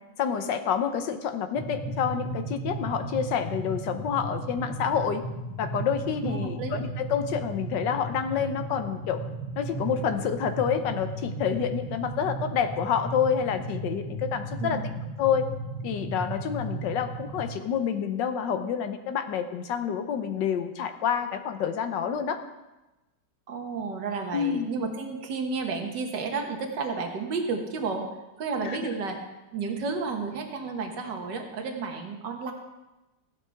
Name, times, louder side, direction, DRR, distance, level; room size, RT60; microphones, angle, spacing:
voice 1, 0.2-5.2 5.6-9.2 9.6-14.8 15.2-15.5 15.8-22.4 24.3-24.7 28.6-28.8, left 7 dB, 80° left, 8 dB, 1.5 m, -28 dB
sound 1, 1.6-17.5, right 2 dB, 30° left, 1.9 m, -35 dB
voice 2, 6.2-6.8 14.6-14.9 23.5-28.1 28.4-29.2 29.5-32.5, right 4 dB, 75° right, 3 dB, 2.0 m, -32 dB
15.0 x 11.5 x 3.5 m, 1.0 s
omnidirectional pair, 1.9 m